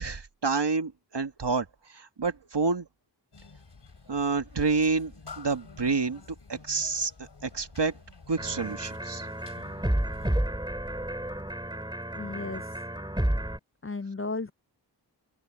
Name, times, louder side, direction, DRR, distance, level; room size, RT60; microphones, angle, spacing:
voice 1, 0.0-1.7 1.9-2.9 4.1-6.2 6.5-7.1 7.4-7.9 8.3-9.3, right 4 dB, 65° right, 1.9 m, -28 dB
sound 1, 3.3-10.4, left 4 dB, 65° left, 3.7 m, -50 dB
sound 2, 8.4-13.6, right 1 dB, 10° right, 3.0 m, -31 dB
voice 2, 12.2-12.6 13.8-14.5, left 3 dB, 30° left, 0.6 m, -34 dB
open air
wide cardioid pair, 55°, 44 cm